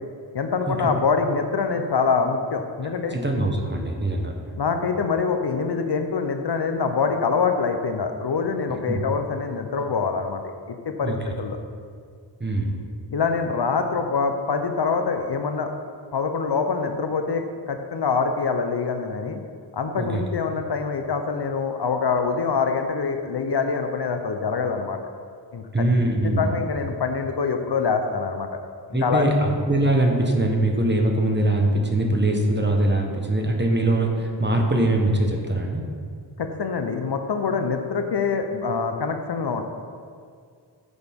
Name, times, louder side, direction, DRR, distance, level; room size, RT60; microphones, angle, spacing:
voice 1, 0.3-3.2 4.6-10.4 10.9-11.6 13.1-15.7 16.1-19.4 19.7-25.0 25.5-25.8 26.2-28.6 28.9-29.3 36.4-39.6, left 5 dB, 60° left, 6 dB, 0.8 m, -25 dB
voice 2, 3.1-4.3 8.9-9.0 11.0-11.2 12.4-12.7 20.0-20.2 25.7-26.5 28.9-35.8, right 1 dB, 25° right, 1 dB, 1.2 m, -22 dB
10.0 x 7.0 x 3.6 m, 2.1 s
wide cardioid pair, 90°, 44 cm